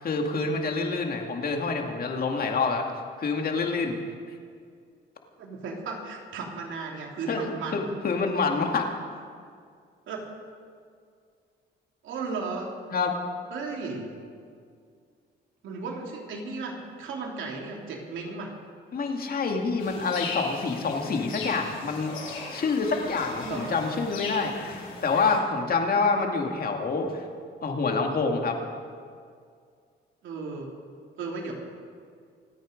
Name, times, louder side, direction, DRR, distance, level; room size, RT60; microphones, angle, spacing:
voice 1, 0.0-2.9 3.2-4.0 7.3-8.9 12.9-13.2 18.9-22.1 22.5-27.3 27.6-28.6, left 4 dB, 50° left, 3 dB, 2.3 m, -27 dB
voice 2, 5.4-7.9 10.1-10.2 12.0-12.7 13.5-14.1 15.6-18.5 23.4-23.8 30.2-30.7 31.2-31.5, right 4 dB, 75° right, -1 dB, 3.2 m, -35 dB
sound 1, 19.8-25.4, left 4 dB, 80° left, 3.9 m, -38 dB
26.5 x 9.3 x 5.3 m, 2.2 s
cardioid pair, 90°, 20 cm